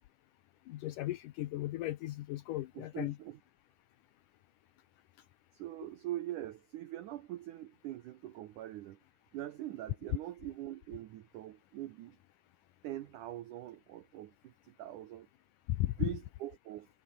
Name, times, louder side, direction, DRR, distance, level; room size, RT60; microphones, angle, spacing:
voice 1, 0.7-3.2 15.8-15.9, left 16 dB, 85° left, 1.8 m, -37 dB
voice 2, 2.7-3.4 5.5-9.0 9.3-12.2 12.8-15.3 15.8-16.9, right 14 dB, 80° right, 1.8 m, -43 dB
omnidirectional pair, 4.8 m